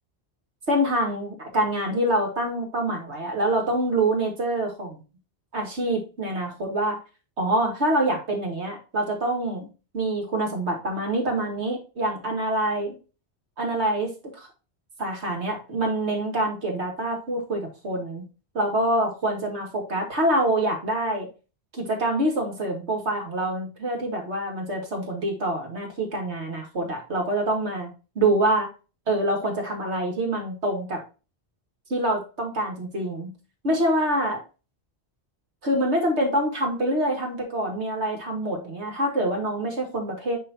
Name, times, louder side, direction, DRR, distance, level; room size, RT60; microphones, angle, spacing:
voice 1, 0.7-5.0 5.5-7.0 7.4-9.7 9.9-13.0 13.6-14.5 15.0-18.3 18.5-21.3 21.7-27.9 28.2-28.7 29.1-31.0 31.9-33.3 33.6-34.4 35.6-40.4, right 1 dB, 85° right, 1 dB, 2.3 m, -26 dB
10.5 x 3.7 x 2.7 m, 0.32 s
omnidirectional pair, 1.1 m